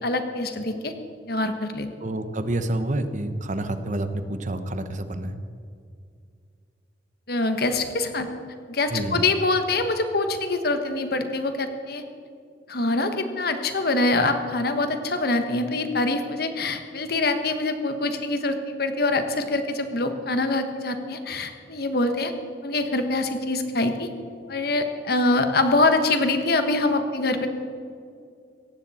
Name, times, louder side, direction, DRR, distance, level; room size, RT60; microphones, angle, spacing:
voice 1, 0.0-0.9 1.3-1.9 7.3-8.3 8.7-12.0 12.7-22.3 22.6-24.1 24.5-27.5, left 2 dB, 60° left, 7 dB, 1.4 m, -24 dB
voice 2, 2.0-5.3 8.9-9.2, right 1 dB, 45° right, 9 dB, 1.0 m, -28 dB
17.5 x 14.5 x 4.3 m, 2.3 s
head